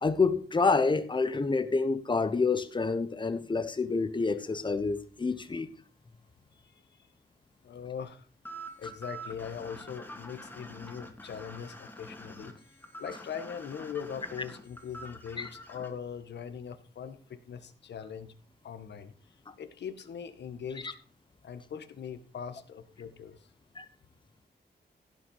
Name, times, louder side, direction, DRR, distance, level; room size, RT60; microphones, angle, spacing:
voice 1, 0.0-5.7 15.4-15.5 23.8-23.9, left 4 dB, 30° left, 1.1 m, -28 dB
voice 2, 7.6-8.2 8.8-12.5 13.0-18.3 18.6-19.1 19.6-21.0 21.4-23.4, left 7 dB, 90° left, 1.5 m, -41 dB
sound 1, 8.4-15.9, right 1 dB, 10° left, 2.2 m, -46 dB
16.5 x 5.8 x 5.7 m
wide cardioid pair, 150°, 17 cm